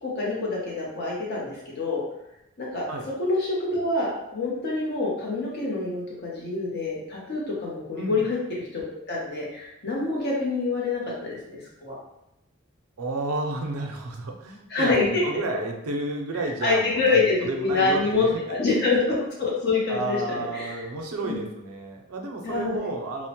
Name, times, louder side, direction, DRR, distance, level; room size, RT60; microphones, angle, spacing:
voice 1, 0.0-2.0 2.6-2.8 3.2-8.4 8.7-11.4 11.8-11.9 14.7-15.2 16.6-20.8 21.2-21.4 22.4-22.9, left 3 dB, 50° left, -4 dB, 0.7 m, -26 dB
voice 2, 8.0-8.3 13.0-18.8 19.9-23.3, right 2 dB, 85° right, 2 dB, 0.5 m, -32 dB
2.8 x 2.0 x 2.8 m, 0.87 s
head